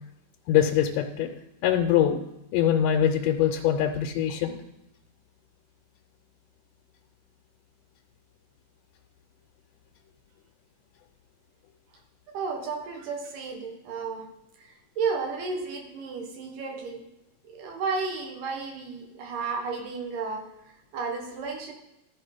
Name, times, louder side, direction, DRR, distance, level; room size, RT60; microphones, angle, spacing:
voice 1, 0.5-1.3 1.6-2.2 2.5-4.6, left 10 dB, 90° left, 2 dB, 2.3 m, -23 dB
voice 2, 12.3-14.3 14.6-17.0 17.4-20.4 20.9-21.7, right 4 dB, 85° right, 1 dB, 3.1 m, -33 dB
13.5 x 4.6 x 5.0 m, 0.91 s
omnidirectional pair, 3.7 m